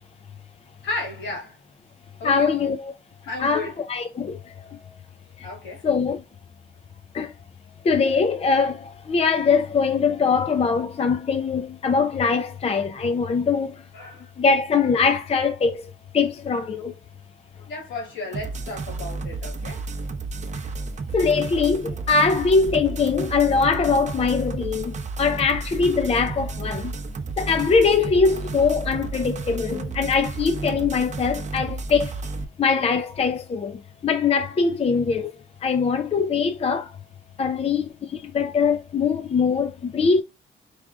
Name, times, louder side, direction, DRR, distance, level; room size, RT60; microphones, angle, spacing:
voice 1, 0.8-1.6 2.2-2.5 3.2-3.8 5.4-5.8 13.9-14.3 17.6-19.8, left 3 dB, 70° left, 2.9 m, -33 dB
voice 2, 2.2-2.9 3.4-4.8 5.4-5.5 5.8-6.2 7.1-7.3 7.8-13.9 14.4-17.0 21.1-26.9 27.4-32.1 32.6-35.3 35.6-37.0 37.4-40.2, left 5 dB, 30° left, 0.5 m, -22 dB
sound 1, 18.3-32.4, right 3 dB, 35° right, 0.7 m, -32 dB
4.8 x 2.3 x 3.6 m
cardioid pair, 90°, 20 cm